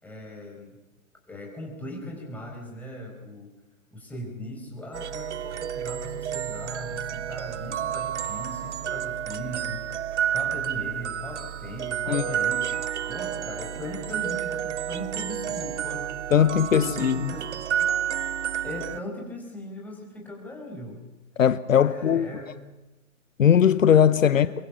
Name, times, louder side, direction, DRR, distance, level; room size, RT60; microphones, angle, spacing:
voice 1, 0.0-0.7 1.3-3.5 3.9-16.1 16.7-17.4 18.6-21.0 21.7-22.5 24.2-24.5, left 1 dB, 5° left, 4.9 m, -38 dB
sound 1, 4.9-19.0, right 9 dB, 55° right, 0.7 m, -30 dB
voice 2, 16.3-17.3 21.4-22.3 23.4-24.5, left 8 dB, 65° left, 0.9 m, -19 dB
23.5 x 22.5 x 7.2 m
figure-of-eight pair, 135°, 43 cm